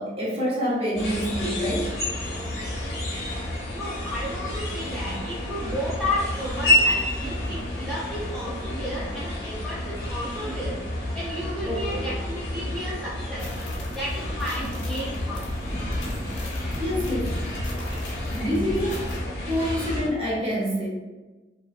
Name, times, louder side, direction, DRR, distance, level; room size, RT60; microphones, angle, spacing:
voice 1, 0.0-1.9 5.0-5.2 11.6-12.1 16.8-17.4 18.2-19.1 19.5-20.9, equal, 30° right, -5 dB, 0.6 m, -27 dB
sound 1, 1.0-20.1, left 1 dB, 55° left, 0.8 m, -30 dB
voice 2, 3.7-10.8 11.1-13.5 14.0-15.5, left 1 dB, ahead, -9 dB, 0.3 m, -32 dB
sound 2, 13.4-19.2, left 1 dB, 85° left, 0.6 m, -35 dB
2.5 x 2.1 x 2.5 m, 1.2 s
head